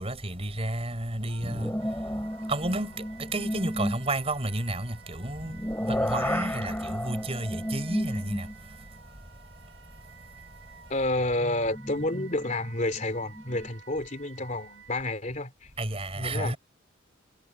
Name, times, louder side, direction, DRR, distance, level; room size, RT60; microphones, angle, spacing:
voice 1, 0.0-1.7 2.5-2.9 3.3-5.6 5.8-8.5 15.8-16.6, right 2 dB, 30° right, 4.4 m, -31 dB
Wind instrument woodwind instrument, 1.3-15.1, right 6 dB, 75° right, 7.9 m, -53 dB
sound 1, 1.4-4.1 5.1-8.7 9.3-9.4 11.1-13.7, equal, 10° left, 3.3 m, -33 dB
voice 2, 10.9-15.7 16.1-16.6, left 2 dB, 40° left, 3.0 m, -30 dB
head